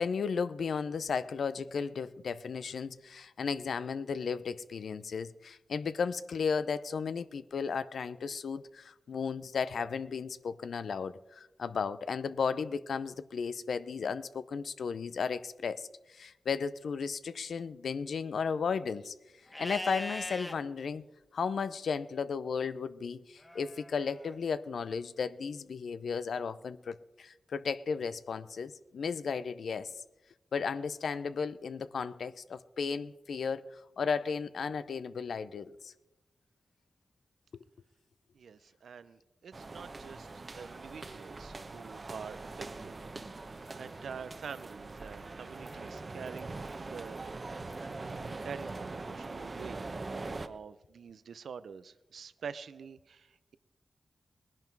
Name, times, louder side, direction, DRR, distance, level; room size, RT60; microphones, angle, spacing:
voice 1, 0.0-19.1 19.6-21.0 21.3-29.9 30.5-33.6 34.0-35.9 37.5-37.6, left 5 dB, 80° left, 0.6 m, -34 dB
Livestock farm animals working animals, 19.5-20.5 23.4-24.4, left 1 dB, 20° left, 1.5 m, -40 dB
voice 2, 38.3-43.0 43.8-47.2 48.4-49.8 50.1-53.6, right 6 dB, 85° right, 0.5 m, -46 dB
sound 1, 39.5-50.5, right 3 dB, 50° right, 1.0 m, -42 dB
19.0 x 10.5 x 4.6 m
cardioid pair, 40°, 0 cm